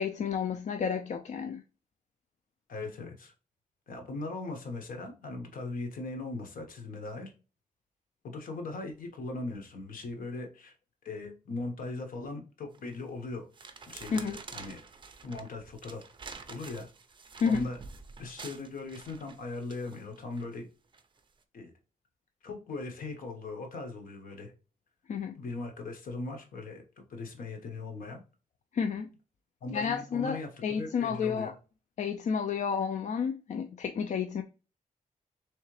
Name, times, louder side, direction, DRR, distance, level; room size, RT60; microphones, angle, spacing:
voice 1, 0.0-1.6 14.1-14.4 17.4-17.7 25.1-25.4 28.7-29.1 29.7-31.5 32.0-34.4, left 6 dB, 55° left, 0.4 m, -31 dB
voice 2, 2.7-3.3 3.9-7.3 8.3-10.7 11.0-13.5 13.9-14.8 15.2-16.0 16.5-16.9 17.4-17.8 18.2-20.7 21.5-21.7 22.4-24.5 25.4-26.8 27.1-28.2 29.6-31.5, left 3 dB, 75° left, 1.1 m, -39 dB
sound 1, 12.7-13.0 13.5-20.4 20.9-21.2, right 4 dB, 35° right, 0.5 m, -48 dB
3.7 x 3.2 x 3.1 m
wide cardioid pair, 120°, 14 cm